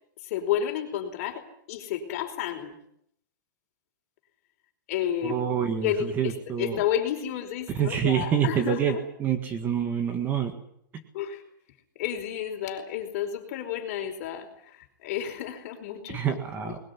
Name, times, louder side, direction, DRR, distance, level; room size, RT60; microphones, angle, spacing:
voice 1, 0.2-2.7 4.9-5.4 5.8-9.0 11.1-11.4 11.9-16.2 16.6-16.7, left 10 dB, 45° left, 4 dB, 4.9 m, -31 dB
voice 2, 5.2-6.8 7.7-10.5 10.9-11.0 16.1-16.8, right 8 dB, 15° right, 7 dB, 1.8 m, -27 dB
21.0 x 20.0 x 9.9 m, 0.71 s
supercardioid pair, 170°, 11 cm